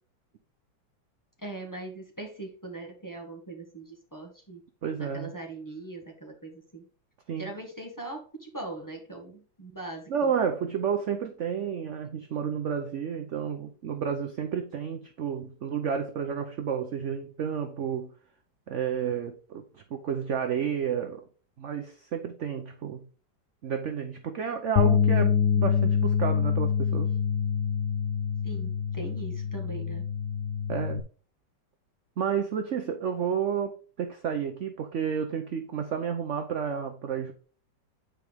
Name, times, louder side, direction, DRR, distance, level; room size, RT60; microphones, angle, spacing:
voice 1, 1.4-4.6 4.9-6.8 7.4-10.1 28.4-30.0, right 2 dB, 10° left, 1.4 m, -40 dB
voice 2, 4.8-5.3 7.3-7.5 10.1-18.1 18.7-21.2 21.6-23.0 23.6-27.1 30.7-31.0 32.2-37.3, right 7 dB, 60° right, 0.7 m, -31 dB
sound 1, 24.8-31.0, left 7 dB, 70° left, 0.9 m, -26 dB
8.7 x 4.6 x 3.5 m
omnidirectional pair, 2.0 m